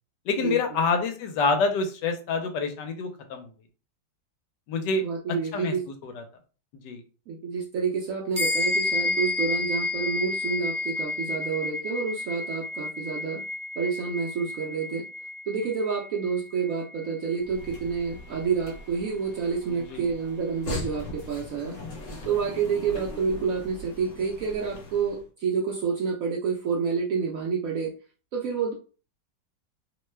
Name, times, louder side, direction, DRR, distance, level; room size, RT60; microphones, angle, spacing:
voice 1, 0.3-3.5 4.7-5.0 5.5-5.7 6.0-6.2 6.8-7.0 19.7-20.1, left 4 dB, 80° left, 6 dB, 1.2 m, -27 dB
voice 2, 5.0-5.8 7.3-13.4 13.8-15.1 15.5-21.8 22.2-27.9 28.3-28.7, right 5 dB, 70° right, -1 dB, 0.8 m, -28 dB
sound 1, 8.3-18.1, left 2 dB, 15° right, 0.6 m, -31 dB
sound 2, 17.4-25.2, left 2 dB, 55° left, 1.1 m, -40 dB
3.0 x 2.2 x 3.1 m, 0.36 s
omnidirectional pair, 1.9 m